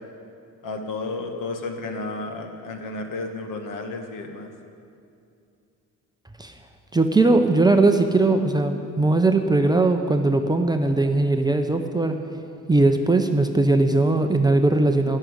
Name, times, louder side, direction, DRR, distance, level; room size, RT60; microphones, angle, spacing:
voice 1, 0.6-4.5, left 3 dB, 65° left, 4 dB, 1.5 m, -32 dB
voice 2, 6.9-12.2 12.7-15.2, right 2 dB, 10° right, 5 dB, 0.6 m, -19 dB
12.5 x 6.5 x 9.7 m, 2.5 s
cardioid pair, 125°, 34 cm